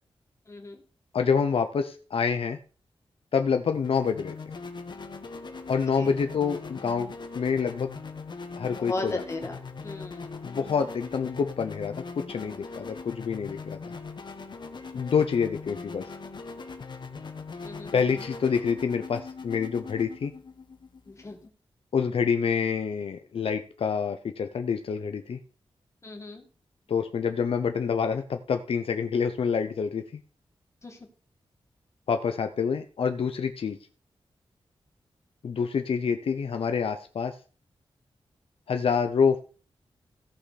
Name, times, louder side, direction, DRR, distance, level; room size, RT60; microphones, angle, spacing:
voice 1, 0.5-0.8 6.0-6.1 8.7-9.6 9.8-10.4 17.6-17.9 21.1-21.4 26.0-26.4 30.8-31.0, left 2 dB, 30° left, 3 dB, 2.1 m, -36 dB
voice 2, 1.1-2.6 3.3-4.3 5.7-7.1 7.3-7.9 8.6-9.2 10.4-13.8 14.9-16.1 17.9-20.3 21.9-25.4 26.9-30.1 32.1-33.8 35.4-37.4 38.7-39.4, left 6 dB, 75° left, 7 dB, 0.8 m, -27 dB
sound 1, 3.7-21.5, left 4 dB, 50° left, 1.2 m, -41 dB
17.0 x 5.7 x 4.2 m, 0.39 s
wide cardioid pair, 155°, 10 cm